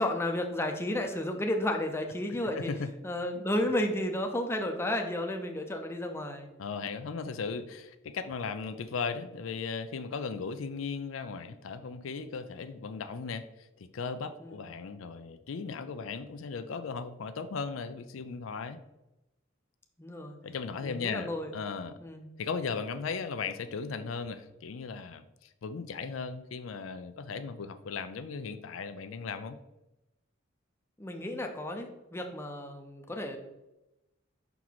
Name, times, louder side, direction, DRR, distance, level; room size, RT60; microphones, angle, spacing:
voice 1, 0.0-2.7 3.0-6.5 14.4-14.7 20.0-20.4 20.8-21.5 22.0-22.3 31.0-33.4, left 1 dB, 10° left, 3 dB, 0.6 m, -32 dB
voice 2, 2.6-2.9 6.6-18.8 20.4-22.0 22.4-29.6, left 5 dB, 80° left, 10 dB, 0.4 m, -37 dB
5.8 x 4.6 x 4.0 m, 0.94 s
head